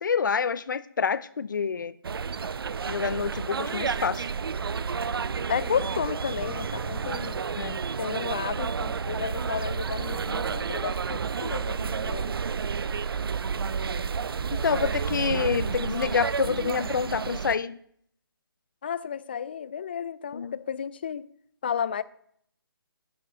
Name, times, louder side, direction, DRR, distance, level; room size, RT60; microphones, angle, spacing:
voice 1, 0.0-1.9 2.9-4.2 7.6-7.8 14.6-17.8 20.3-20.6, left 6 dB, 55° left, 0.7 m, -27 dB
sound 1, 2.0-17.6, right 6 dB, 70° right, 0.5 m, -30 dB
voice 2, 5.5-7.4 8.0-12.3 18.8-21.3 21.6-22.0, left 8 dB, 25° left, 0.4 m, -32 dB
11.0 x 6.6 x 8.4 m
hypercardioid pair, 170°, 12 cm